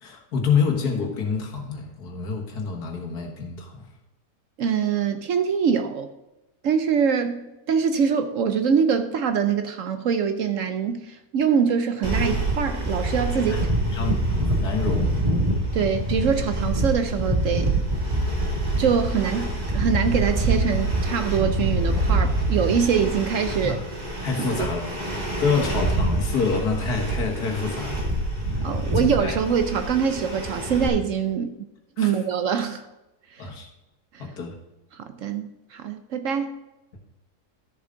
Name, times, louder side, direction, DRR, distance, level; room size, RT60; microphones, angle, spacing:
voice 1, 0.0-3.9 13.3-13.6 13.9-15.2 23.6-23.8 24.2-24.9 25.4-28.1 28.5-29.4 32.0-32.1 33.4-33.7 34.2-34.5, left 5 dB, 70° left, 2.0 m, -27 dB
voice 2, 4.6-6.1 6.6-13.6 15.7-17.7 18.8-23.8 24.5-24.7 28.6-31.6 32.0-32.8 33.3-33.5 34.1-34.3 34.9-36.5, right 7 dB, 65° right, 0.9 m, -24 dB
sound 1, 12.0-30.9, right 1 dB, 25° right, 2.1 m, -25 dB
12.5 x 7.0 x 3.8 m
omnidirectional pair, 1.7 m